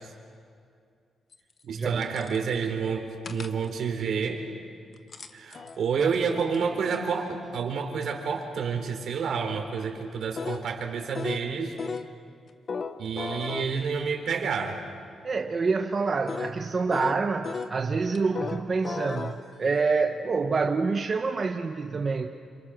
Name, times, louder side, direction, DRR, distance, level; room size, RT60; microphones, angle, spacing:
sound 1, 1.3-1.4 2.0-2.5 3.2-3.7 4.9-7.1 10.4-10.7 11.1-11.5 11.8-12.1 12.7-14.1 16.3-16.6 16.9-17.8 18.1-19.8, left 5 dB, 45° left, 1.1 m, -35 dB
voice 1, 1.6-4.4 5.3-11.8 13.0-14.8, right 6 dB, 70° right, 3 dB, 4.1 m, -29 dB
voice 2, 15.2-22.3, right 4 dB, 35° right, 4 dB, 1.1 m, -27 dB
28.5 x 27.0 x 6.5 m, 2.3 s
cardioid pair, 110°, 0 cm